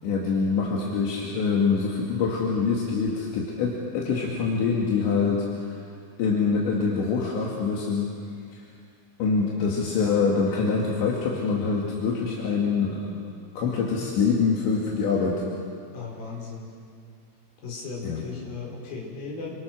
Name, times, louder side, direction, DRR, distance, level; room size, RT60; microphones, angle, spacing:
voice 1, 0.0-5.8 6.2-8.1 8.5-8.6 9.2-13.1 13.6-15.5 18.0-18.2, left 5 dB, 75° left, -3 dB, 4.7 m, -25 dB
voice 2, 15.9-16.7 17.6-19.5, left 4 dB, 55° left, -2 dB, 6.7 m, -36 dB
28.0 x 26.0 x 6.3 m, 2.2 s
omnidirectional pair, 5.2 m